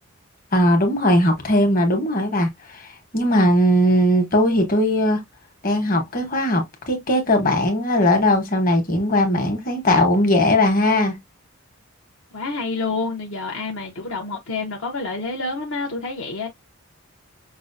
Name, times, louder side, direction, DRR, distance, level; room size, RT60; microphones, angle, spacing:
voice 1, 0.5-5.2 5.6-11.2, left 1 dB, 40° left, 1.2 m, -19 dB
voice 2, 12.3-16.5, left 3 dB, 65° left, 0.8 m, -28 dB
6.0 x 2.1 x 2.6 m
head